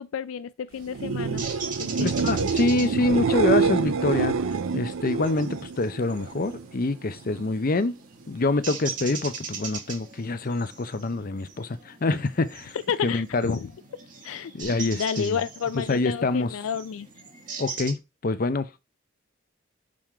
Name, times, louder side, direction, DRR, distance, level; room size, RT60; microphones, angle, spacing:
voice 1, 0.0-1.5 1.8-2.3 12.9-13.7 14.2-17.1, left 7 dB, 85° left, 0.4 m, -31 dB
sound 1, 0.7-17.9, right 5 dB, 40° right, 1.9 m, -41 dB
sound 2, 0.9-6.6 7.0-7.6 14.6-14.7, right 5 dB, 80° right, 0.5 m, -26 dB
voice 2, 2.0-7.9 8.3-12.7 13.0-13.6 14.5-15.4 15.9-16.6 17.6-18.8, left 3 dB, 45° left, 0.6 m, -26 dB
6.2 x 3.7 x 4.4 m
head